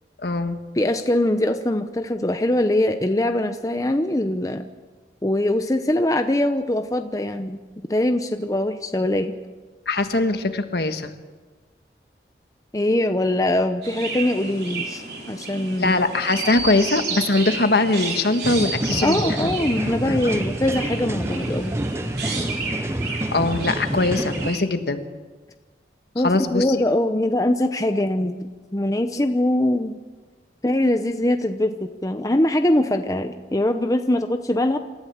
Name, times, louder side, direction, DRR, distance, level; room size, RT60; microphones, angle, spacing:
voice 1, 0.2-0.6 9.9-11.1 15.8-19.5 20.1-20.2 23.3-25.1 26.2-26.8, left 2 dB, 65° left, 8 dB, 1.4 m, -21 dB
voice 2, 0.8-4.6 5.2-7.6 7.9-9.3 12.7-15.0 15.3-16.0 19.0-21.7 26.1-30.0 30.6-34.8, left 1 dB, 20° left, 7 dB, 0.7 m, -22 dB
Chirp tweet, 13.8-24.6, right 4 dB, 65° right, 4.1 m, -32 dB
sound 1, 18.4-24.5, right 1 dB, 15° right, 0.6 m, -28 dB
27.0 x 13.5 x 7.2 m, 1.3 s
head